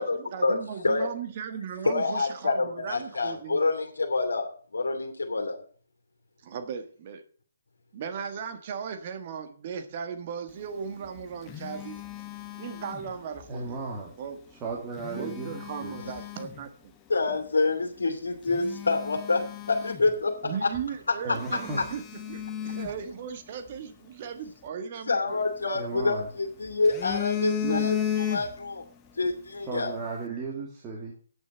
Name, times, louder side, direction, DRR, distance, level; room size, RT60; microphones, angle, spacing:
voice 1, 0.0-3.6 6.4-7.2 7.9-12.0 12.6-13.8 14.2-14.4 15.1-16.9 20.4-22.0 22.3-25.5 25.7-25.8 27.6-27.9, right 7 dB, 40° right, 8 dB, 1.6 m, -37 dB
voice 2, 1.8-5.6 17.1-19.4 19.7-20.3 25.1-28.0 28.3-28.8 29.2-29.9, left 3 dB, 75° left, 1 dB, 2.5 m, -27 dB
Telephone, 10.9-13.5 14.7-16.6 17.3-17.4 18.0-18.1 18.4-20.5 20.7-20.9 21.4-23.8 25.3-26.3 26.7-28.8 29.1-29.3, left 10 dB, 15° left, 1.3 m, -35 dB
voice 3, 13.5-14.1 14.5-16.0 21.2-21.8 25.7-26.3 29.6-31.1, right 4 dB, 20° right, -2 dB, 2.2 m, -36 dB
9.0 x 6.7 x 8.0 m, 0.44 s
figure-of-eight pair, 145°, 0 cm